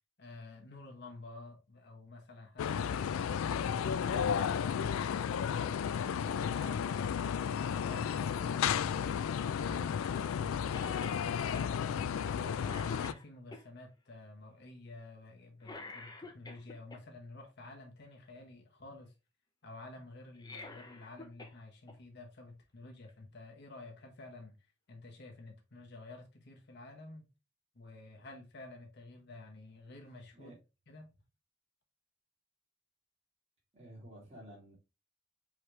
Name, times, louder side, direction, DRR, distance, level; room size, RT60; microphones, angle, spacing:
voice 1, 0.2-3.0 3.5-5.9 6.2-9.2 9.6-12.6 12.9-19.1 19.6-24.5 24.9-27.3 27.7-30.5 30.9-31.1, left 2 dB, 55° left, 1.0 m, -51 dB
sound 1, 2.6-13.1, left 7 dB, 80° left, 0.3 m, -33 dB
Cough, 10.7-11.2 11.6-11.7 12.2-12.4 12.6-13.6 15.6-17.0 20.3-21.6 21.9-22.0 23.1-23.2, left 2 dB, 20° left, 0.7 m, -48 dB
voice 2, 33.7-34.7, right 1 dB, 30° right, 2.3 m, -52 dB
4.9 x 3.1 x 3.2 m
head